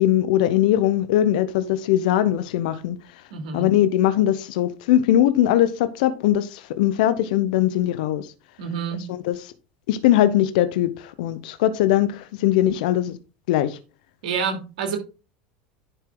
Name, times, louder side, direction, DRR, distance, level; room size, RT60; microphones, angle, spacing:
voice 1, 0.0-3.0 3.5-8.3 9.1-9.4 9.9-13.2 13.5-13.8, left 12 dB, 75° left, 0.8 m, -20 dB
voice 2, 3.3-3.7 8.6-9.0 14.2-15.0, right 6 dB, 80° right, 2.7 m, -28 dB
11.0 x 4.7 x 3.8 m
supercardioid pair, 100°, 4 cm